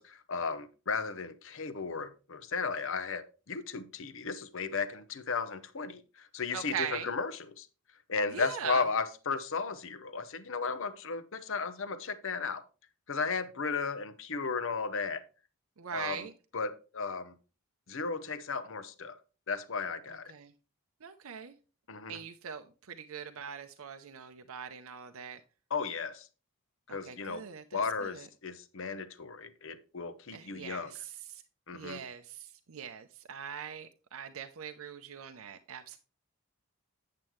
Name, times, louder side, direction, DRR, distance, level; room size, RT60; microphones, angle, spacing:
voice 1, 0.0-7.7 8.1-12.7 13.1-15.2 15.9-16.3 16.5-17.3 17.9-19.2 19.5-20.3 21.9-22.2 25.7-26.3 26.9-27.4 27.7-30.9 31.7-32.0, left 4 dB, 60° left, 0.7 m, -35 dB
voice 2, 6.5-7.1 8.3-8.8 15.8-16.3 20.3-20.5 21.0-21.5 22.1-25.4 26.9-28.1 30.3-31.0 31.3-31.4 31.7-36.0, right 7 dB, 70° right, 0.6 m, -41 dB
8.6 x 7.6 x 3.1 m
head